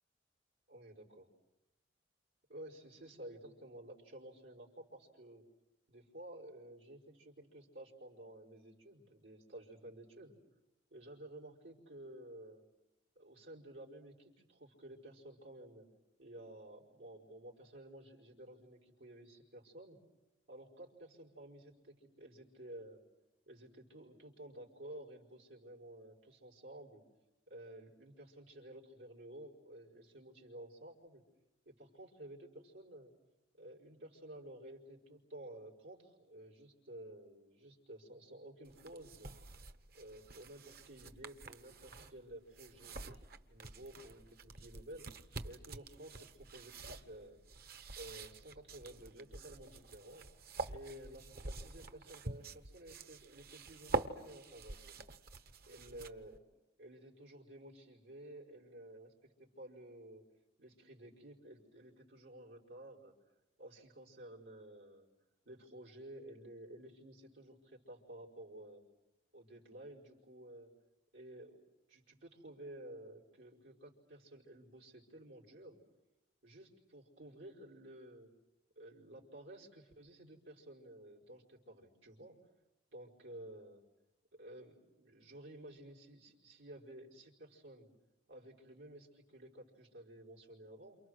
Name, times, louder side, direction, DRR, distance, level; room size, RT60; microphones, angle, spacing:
voice 1, 0.7-1.3 2.5-5.4 5.9-10.4 10.9-12.6 13.1-15.9 16.2-20.0 20.5-23.0 23.5-27.0 27.5-31.2 31.6-33.1 33.6-39.3 39.9-45.1 45.4-47.4 48.0-50.2 50.7-55.0 55.7-56.4 56.8-60.2 60.6-63.1 63.6-65.1 65.4-68.8 69.3-70.7 71.1-71.6 71.9-75.8 76.4-78.3 78.7-82.4 82.9-83.8 84.3-87.9 88.3-91.0, right 1 dB, 90° right, -4 dB, 4.9 m, -53 dB
sound 1, 38.6-56.4, right 3 dB, 50° right, 1.1 m, -46 dB
29.0 x 28.0 x 6.4 m, 0.99 s
head